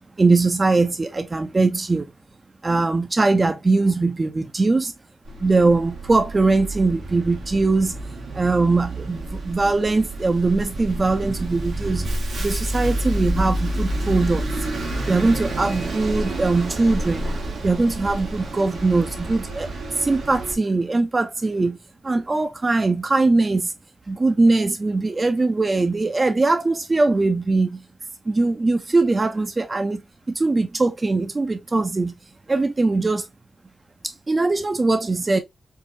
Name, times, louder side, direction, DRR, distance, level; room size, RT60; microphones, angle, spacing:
voice 1, 0.2-2.1 2.6-4.9 5.4-7.9 8.3-12.1 12.4-14.4 15.1-17.2 17.6-21.8 22.0-23.7 24.1-27.8 28.3-30.0 30.3-32.1 32.5-33.3 34.0-35.4, right 3 dB, 35° right, 0.5 m, -21 dB
Bus, 5.3-20.6, right 1 dB, 90° right, 1.1 m, -29 dB
4.5 x 2.1 x 2.5 m
cardioid pair, 70°, 0 cm